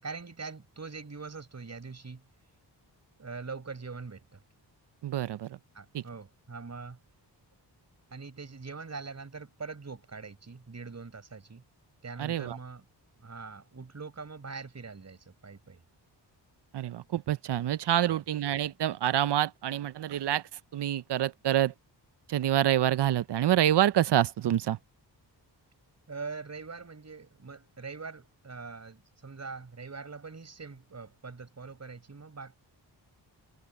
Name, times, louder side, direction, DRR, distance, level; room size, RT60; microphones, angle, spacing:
voice 1, 0.0-2.2 3.2-4.4 5.7-7.0 8.1-11.6 12.0-12.8 13.2-15.8 26.1-32.6, right 4 dB, 35° right, 6.2 m, -43 dB
voice 2, 5.0-5.6 5.9-6.0 12.2-12.6 16.7-20.4 20.7-21.7 22.3-24.8, right 12 dB, 65° right, 0.7 m, -27 dB
open air
wide cardioid pair, 100°, 43 cm